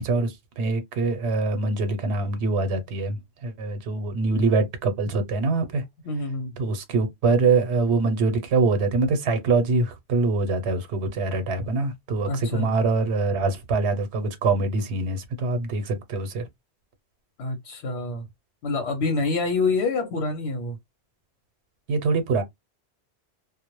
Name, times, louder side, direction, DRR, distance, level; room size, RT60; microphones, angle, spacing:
voice 1, 0.0-3.2 3.4-5.8 6.6-16.4 21.9-22.4, right 3 dB, 80° right, 0.9 m, -24 dB
voice 2, 6.0-6.5 12.3-12.7 17.4-18.2 18.6-20.8, left 3 dB, 90° left, 0.9 m, -26 dB
2.1 x 2.0 x 2.9 m
omnidirectional pair, 1.1 m